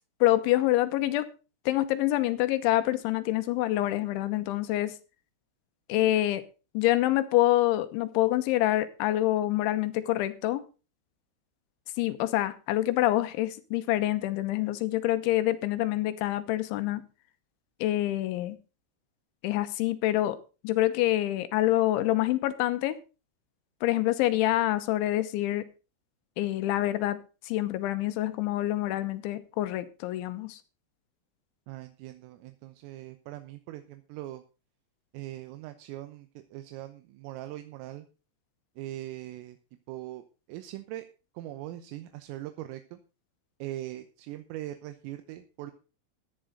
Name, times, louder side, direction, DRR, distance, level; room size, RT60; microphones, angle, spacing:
voice 1, 0.2-1.3 1.7-4.9 5.9-6.5 6.7-10.6 12.0-17.0 17.8-18.6 19.4-20.4 20.6-23.0 23.8-25.7 26.4-30.6, left 15 dB, 75° left, 3.1 m, -26 dB
voice 2, 31.7-34.4 35.1-38.1 38.8-39.6 39.9-41.1 41.4-43.0 43.6-45.7, right 15 dB, 80° right, 3.5 m, -41 dB
14.5 x 10.0 x 3.8 m
omnidirectional pair, 6.0 m